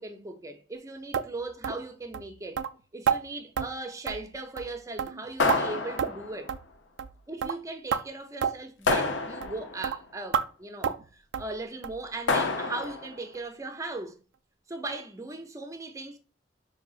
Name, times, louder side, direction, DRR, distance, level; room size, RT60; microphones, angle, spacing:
voice 1, 0.0-2.6 2.9-6.5 7.3-14.2 14.7-16.2, right 2 dB, 15° right, 0.5 m, -38 dB
sound 1, 1.1-1.3 1.6-1.8 2.1-2.3 2.6-2.7 3.1-3.2 3.6-3.7 4.1-4.3 4.6-4.7 5.0-5.6 6.0-6.2 6.5-6.6 7.0-7.1 7.4-7.6 7.9-8.0 8.4-8.5 8.9-9.0 9.4-9.6 9.8-10.0 10.3-10.5 10.8-11.0 11.3-11.5 11.8-12.0 12.3-12.4 12.8-12.9 13.3-13.4, right 7 dB, 80° right, 0.3 m, -29 dB
sound 2, 5.4-6.5 8.9-9.8 12.3-13.1, left 3 dB, 75° left, 0.6 m, -28 dB
5.1 x 2.7 x 2.3 m
head